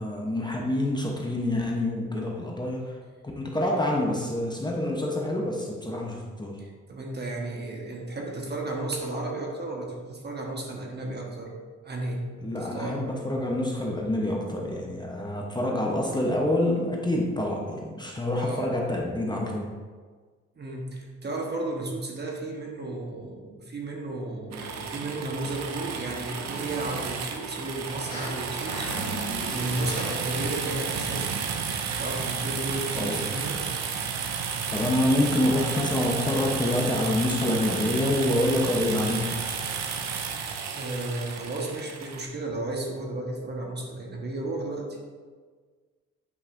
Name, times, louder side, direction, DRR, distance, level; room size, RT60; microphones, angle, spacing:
voice 1, 0.0-3.0 3.4-6.6 12.4-19.7 33.0-33.2 34.7-39.2, left 1 dB, 15° left, -1 dB, 0.9 m, -27 dB
voice 2, 6.6-11.5 11.8-12.3 12.5-13.0 18.3-18.8 20.6-31.4 32.0-33.7 40.7-45.0, right 2 dB, 35° right, 0 dB, 1.3 m, -33 dB
sound 1, 24.5-28.3 28.6-30.4, left 1 dB, 70° left, 1.6 m, -41 dB
sound 2, 24.5-42.2, right 6 dB, 60° right, 0.8 m, -32 dB
8.4 x 5.3 x 2.6 m, 1.5 s
cardioid pair, 90°, 30 cm